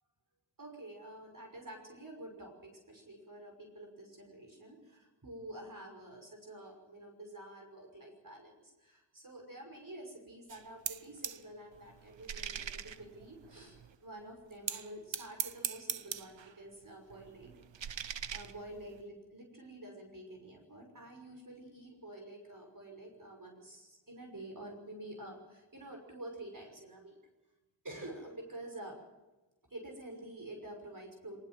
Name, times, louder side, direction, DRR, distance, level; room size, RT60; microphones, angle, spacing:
voice 1, 0.6-17.6 18.3-27.2 27.8-29.0 29.7-31.4, right 1 dB, 45° right, 3 dB, 5.9 m, -49 dB
sound 1, 10.5-11.4 11.7-14.0 14.7-16.5 16.8-19.0, right 8 dB, 85° right, 0.9 m, -41 dB
20.5 x 19.5 x 7.7 m, 1.1 s
cardioid pair, 45°, 44 cm